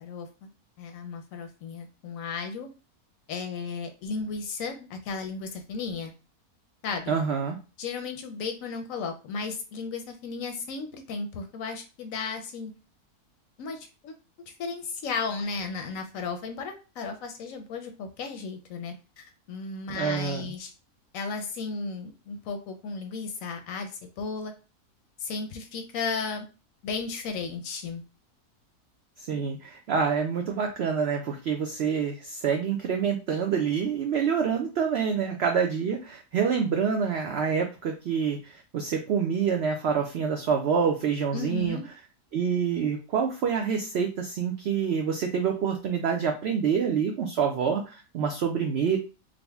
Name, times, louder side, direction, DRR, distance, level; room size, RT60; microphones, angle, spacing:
voice 1, 0.0-0.5 0.8-2.7 3.3-6.1 6.8-7.1 7.8-12.7 13.6-14.1 14.5-20.7 21.1-24.5 25.2-26.5 26.8-28.0 41.3-41.8, left 4 dB, 70° left, 6 dB, 0.9 m, -34 dB
voice 2, 7.1-7.6 19.9-20.5 29.2-41.8 42.3-49.0, right 6 dB, 85° right, 3 dB, 0.5 m, -27 dB
3.7 x 2.0 x 3.4 m, 0.32 s
omnidirectional pair, 1.6 m